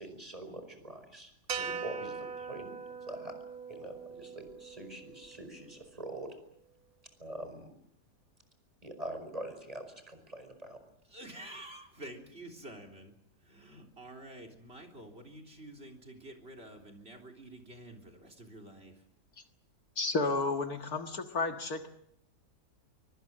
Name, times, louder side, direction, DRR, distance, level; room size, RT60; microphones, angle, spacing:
voice 1, 0.0-2.7 3.0-3.3 3.7-6.4 7.2-7.7 8.8-10.8, right 1 dB, 20° right, 8 dB, 5.2 m, -44 dB
sound 1, 1.5-5.8, right 6 dB, 60° right, 1.8 m, -41 dB
voice 2, 11.1-13.1 13.4-19.0, right 1 dB, 35° right, 8 dB, 3.8 m, -49 dB
voice 3, 20.0-21.9, left 3 dB, 60° left, 6 dB, 2.1 m, -32 dB
24.5 x 24.0 x 7.6 m, 0.71 s
omnidirectional pair, 1.8 m